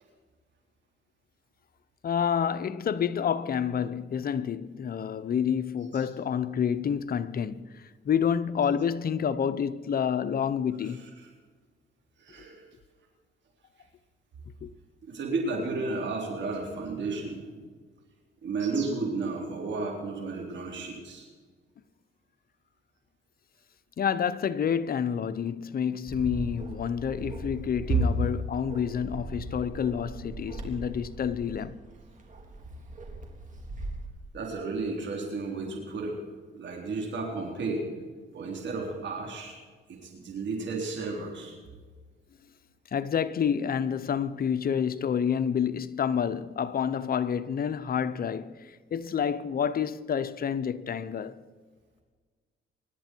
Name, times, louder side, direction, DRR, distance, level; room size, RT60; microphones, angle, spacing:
voice 1, 2.0-11.0 14.6-14.7 24.0-31.8 42.9-51.4, left 7 dB, 50° left, 0.8 m, -28 dB
voice 2, 10.8-11.3 12.2-12.7 15.1-17.5 18.4-21.3 27.9-28.0 34.3-36.2 36.5-37.8 38.3-39.6 39.9-41.6, right 4 dB, 65° right, 3.6 m, -32 dB
Bark, 26.1-34.1, right 2 dB, 40° right, 3.8 m, -40 dB
25.0 x 12.0 x 4.6 m
cardioid pair, 90°, 20 cm